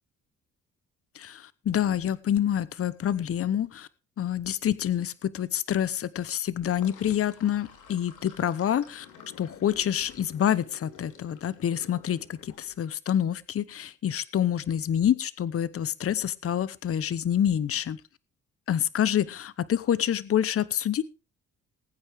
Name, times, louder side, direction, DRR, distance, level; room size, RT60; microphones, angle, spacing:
voice 1, 1.1-3.9 4.2-9.1 9.4-18.0 18.7-21.0, left 10 dB, 50° left, 18 dB, 0.9 m, -27 dB
Sink (filling or washing), 6.6-12.9, left 6 dB, 80° left, 3.7 m, -51 dB
20.0 x 8.9 x 3.5 m, 0.31 s
cardioid pair, 90°, 30 cm